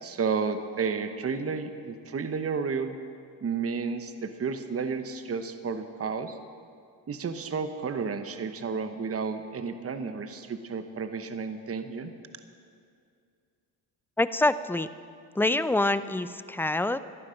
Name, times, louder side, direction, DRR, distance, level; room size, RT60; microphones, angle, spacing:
voice 1, 0.0-2.9 3.4-6.4 7.1-12.1, right 5 dB, 35° right, 9 dB, 1.1 m, -32 dB
voice 2, 14.2-14.9 15.4-17.0, left 2 dB, 5° left, 14 dB, 0.4 m, -25 dB
18.0 x 12.0 x 5.2 m, 2.4 s
supercardioid pair, 70°, 42 cm